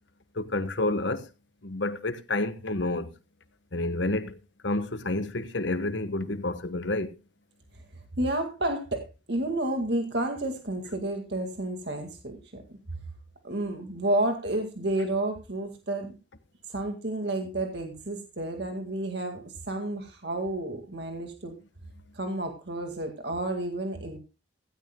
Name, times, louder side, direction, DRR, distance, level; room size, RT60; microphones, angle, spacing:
voice 1, 0.3-1.3 1.6-3.1 3.7-4.4 4.6-7.1, left 2 dB, 70° left, 1.2 m, -29 dB
voice 2, 8.2-12.8 13.4-16.2 16.7-21.5 22.1-24.2, right 1 dB, 60° right, 2.0 m, -31 dB
16.0 x 16.0 x 2.2 m
head